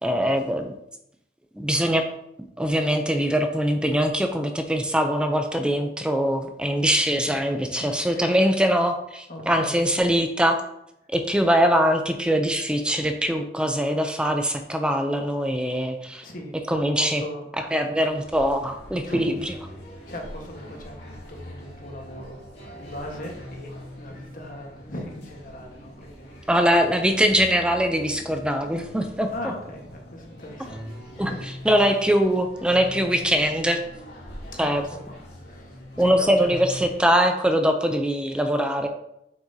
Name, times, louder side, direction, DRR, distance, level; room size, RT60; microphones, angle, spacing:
voice 1, 0.0-0.7 1.6-2.1 2.6-10.6 11.1-16.3 16.7-17.2 17.7-19.4 26.5-29.5 31.2-31.3 31.7-33.8 34.6-34.8 36.0-38.9, equal, 5° right, 6 dB, 0.5 m, -22 dB
voice 2, 7.2-8.4 9.3-10.0 16.2-16.6 17.0-17.5 19.0-19.2 20.1-22.4 22.7-23.7 24.0-26.5 29.3-31.7 34.6-36.5, left 1 dB, 50° left, 1 dB, 1.4 m, -39 dB
sound 1, 18.0-37.1, equal, 75° left, 2.1 m, -42 dB
7.5 x 5.9 x 2.8 m, 0.78 s
head